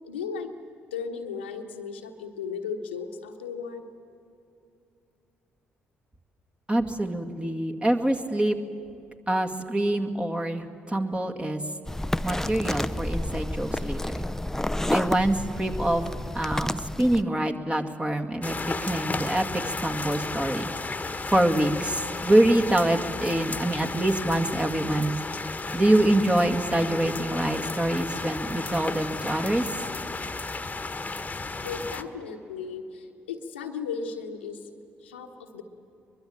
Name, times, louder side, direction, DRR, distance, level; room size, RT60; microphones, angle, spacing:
voice 1, 0.0-0.5 0.9-3.8 31.6-34.7 35.0-35.6, left 6 dB, 85° left, 4 dB, 1.3 m, -35 dB
voice 2, 6.7-8.6 9.3-11.6 12.2-14.3 14.9-16.1 16.3-20.7 21.3-25.1 25.7-29.7, right 1 dB, 20° right, 4 dB, 2.2 m, -25 dB
sound 1, 11.9-17.2, left 1 dB, 5° left, 0.7 m, -30 dB
sound 2, 18.4-32.0, left 3 dB, 25° left, 1.5 m, -33 dB
23.0 x 22.0 x 8.6 m, 2.7 s
figure-of-eight pair, 40°, 6 cm